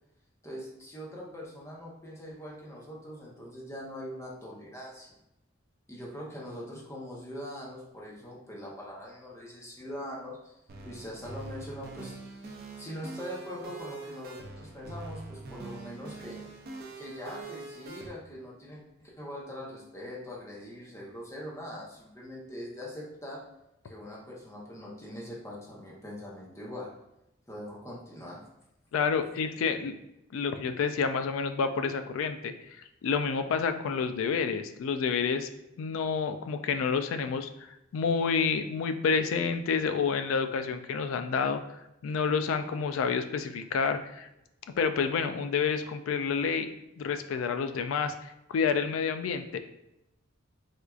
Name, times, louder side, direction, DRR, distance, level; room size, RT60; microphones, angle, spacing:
voice 1, 0.4-5.2 5.9-10.5 10.8-12.4 12.8-16.4 17.0-23.4 23.8-26.9 27.5-28.4, equal, 15° left, -4 dB, 0.7 m, -42 dB
sound 1, 10.7-18.1, right 3 dB, 50° right, 0.5 m, -44 dB
voice 2, 28.9-30.0 30.3-32.5 33.0-35.5 35.8-37.5 37.9-44.3 44.8-46.7 47.0-49.6, left 5 dB, 75° left, 9 dB, 0.3 m, -29 dB
4.3 x 2.4 x 2.3 m, 0.86 s
head